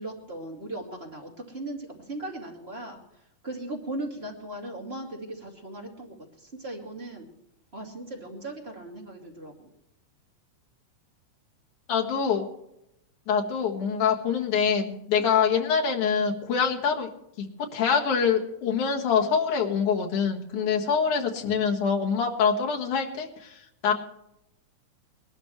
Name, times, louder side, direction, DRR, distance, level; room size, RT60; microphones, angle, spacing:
voice 1, 0.0-7.3 7.7-9.7 15.2-15.3 20.5-20.7, right 1 dB, 20° right, -2 dB, 2.5 m, -38 dB
voice 2, 11.9-12.5 13.3-17.1 17.4-17.5 17.7-23.9, left 6 dB, 75° left, 0 dB, 3.2 m, -25 dB
21.0 x 12.5 x 3.2 m, 0.82 s
omnidirectional pair, 3.6 m